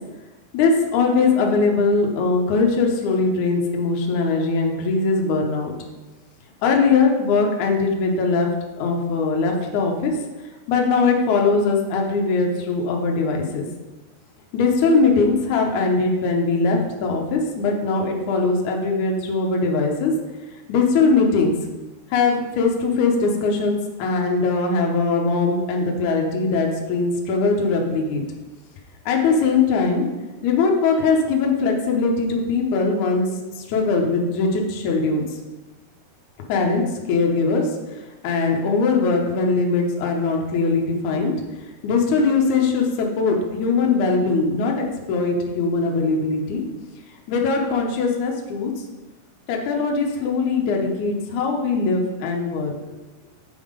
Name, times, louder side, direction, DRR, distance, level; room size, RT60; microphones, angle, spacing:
voice 1, 0.5-5.7 6.6-8.5 8.7-10.1 10.7-13.7 14.5-20.1 20.7-21.5 22.1-28.2 29.0-30.0 30.4-33.3 33.6-35.2 36.5-36.8 37.1-37.6 38.2-41.3 41.8-44.7 45.1-46.6 47.3-48.7 49.5-52.9, left 4 dB, 90° left, 1 dB, 1.7 m, -21 dB
9.0 x 3.7 x 5.1 m, 1.1 s
omnidirectional pair, 4.8 m